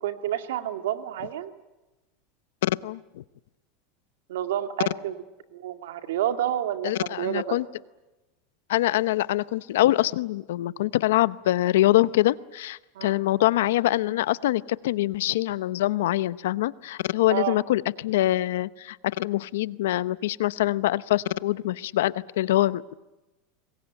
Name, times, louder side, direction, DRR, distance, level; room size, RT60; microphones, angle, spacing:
voice 1, 0.0-1.5 4.3-5.2 5.5-7.6 12.9-13.1 17.3-17.6, right 11 dB, 85° right, 7 dB, 2.2 m, -29 dB
voice 2, 2.6-3.2 6.8-7.6 8.7-22.9, left 15 dB, 80° left, 17 dB, 0.8 m, -24 dB
26.5 x 21.5 x 9.1 m, 1.0 s
supercardioid pair, 130°, 0 cm